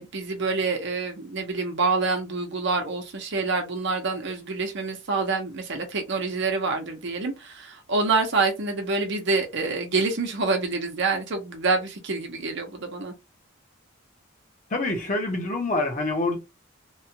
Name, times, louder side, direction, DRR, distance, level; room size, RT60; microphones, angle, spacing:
voice 1, 0.0-13.1, right 3 dB, 60° right, 0.8 m, -27 dB
voice 2, 14.7-16.4, left 2 dB, 40° left, 0.9 m, -26 dB
3.0 x 2.4 x 2.8 m
head